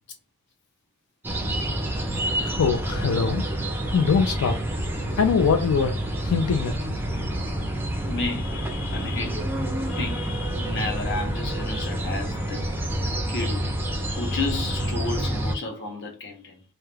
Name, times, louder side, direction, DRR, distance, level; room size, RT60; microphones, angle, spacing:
sound 1, 1.2-15.5, right 1 dB, 10° right, 0.4 m, -28 dB
voice 1, 2.4-3.4 3.9-4.6 5.2-6.7, left 6 dB, 90° left, 0.4 m, -23 dB
voice 2, 8.1-9.4 9.8-12.6 13.3-13.7 14.1-16.6, left 3 dB, 50° left, 0.7 m, -32 dB
2.3 x 2.1 x 3.1 m
head